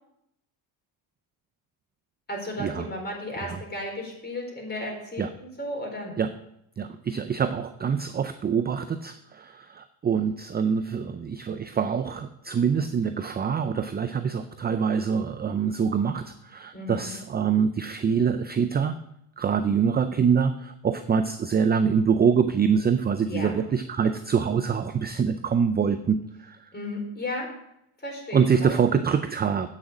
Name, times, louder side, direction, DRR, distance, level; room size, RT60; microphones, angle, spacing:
voice 1, 2.3-6.1 16.7-17.1 23.2-23.5 26.7-27.5 28.0-28.8, left 1 dB, 20° left, 0 dB, 4.4 m, -34 dB
voice 2, 6.8-19.0 19.4-26.6 28.3-29.7, right 6 dB, 20° right, 10 dB, 0.5 m, -25 dB
8.3 x 6.6 x 7.1 m, 0.79 s
supercardioid pair, 85°, 50 cm